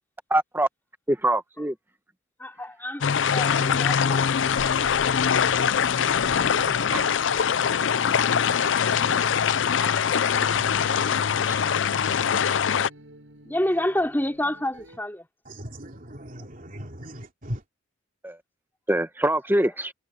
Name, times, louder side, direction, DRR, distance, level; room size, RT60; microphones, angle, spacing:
voice 1, 0.3-0.7 1.1-1.7 6.9-7.0 9.8-9.9 11.5-11.6 18.2-18.4 18.9-19.9, right 1 dB, 10° right, 1.1 m, -24 dB
voice 2, 2.4-4.3 11.6-11.8 13.4-15.3, left 1 dB, 10° left, 4.8 m, -29 dB
sound 1, 3.0-12.9, left 7 dB, 80° left, 0.5 m, -23 dB
sound 2, 5.8-15.0, right 1 dB, 85° right, 7.0 m, -48 dB
voice 3, 15.5-17.6, equal, 45° right, 3.1 m, -38 dB
head